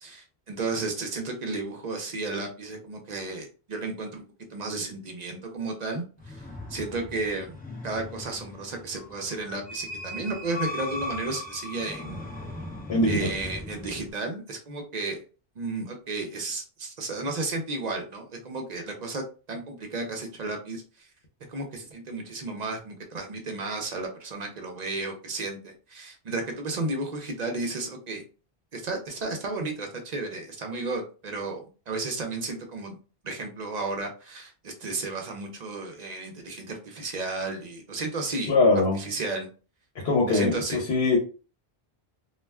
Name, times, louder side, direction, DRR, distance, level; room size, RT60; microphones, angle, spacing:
voice 1, 0.0-7.6 7.8-12.3 13.1-15.2 15.6-20.8 21.5-28.3 28.7-33.0 33.2-38.5 38.9-39.5 40.3-40.8, right 3 dB, 50° right, 3 dB, 0.6 m, -33 dB
sound 1, 6.2-14.1, left 2 dB, 15° left, 0.3 m, -38 dB
voice 2, 12.9-13.3 38.5-39.0 40.0-41.2, left 3 dB, 75° left, -1 dB, 1.0 m, -22 dB
2.4 x 2.1 x 3.3 m, 0.35 s
omnidirectional pair, 1.1 m